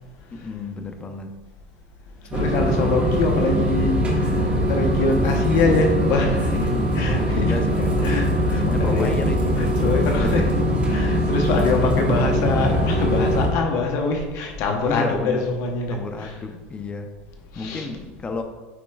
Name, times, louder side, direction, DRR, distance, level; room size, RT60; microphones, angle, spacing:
voice 1, 0.3-1.3 6.6-8.2 8.6-9.6 10.2-10.5 11.4-11.8 14.9-15.5 15.9-17.1 17.5-18.4, left 3 dB, 20° left, 6 dB, 0.6 m, -31 dB
voice 2, 2.3-6.7 6.9-9.1 9.5-10.4 10.9-16.4 17.5-17.9, left 3 dB, 55° left, 2 dB, 0.9 m, -24 dB
sound 1, 2.3-13.5, equal, 20° right, 1.3 m, -21 dB
9.2 x 4.3 x 2.4 m, 1.3 s
supercardioid pair, 120°, 6 cm